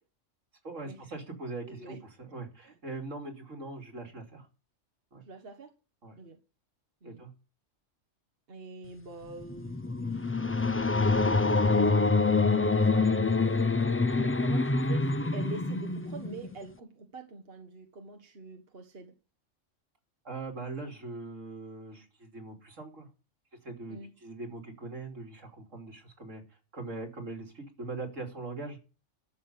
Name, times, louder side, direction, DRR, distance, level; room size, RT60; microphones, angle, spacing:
voice 1, 0.6-4.5 5.1-5.2 6.0-6.1 7.0-7.3 14.4-14.7 20.2-23.1 23.6-26.4 26.7-28.8, right 3 dB, 75° right, 3.4 m, -41 dB
voice 2, 1.6-2.0 2.6-2.7 5.3-5.7 6.2-6.4 7.0-7.2 8.5-12.4 12.7-19.1 23.9-24.1, right 3 dB, 50° right, 1.8 m, -46 dB
sound 1, 9.3-16.7, left 3 dB, 20° left, 0.4 m, -26 dB
12.5 x 6.8 x 8.0 m
omnidirectional pair, 1.3 m